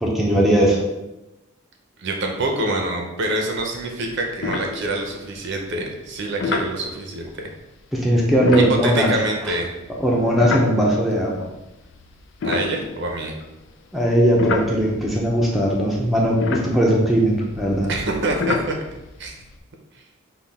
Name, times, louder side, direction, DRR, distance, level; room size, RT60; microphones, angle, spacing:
voice 1, 0.0-0.8 7.9-9.1 10.0-11.3 13.9-17.9, equal, ahead, -4 dB, 0.6 m, -19 dB
voice 2, 2.0-7.4 8.5-9.7 12.4-13.3 17.9-18.8 19.2-19.3, right 2 dB, 60° right, 2 dB, 0.7 m, -26 dB
sound 1, 3.5-3.8 4.1-4.2 4.4-5.3 6.4-6.8 8.3-11.2 11.8-13.6 14.1-19.6, left 4 dB, 60° left, 0.4 m, -29 dB
5.6 x 2.3 x 3.5 m, 0.98 s
head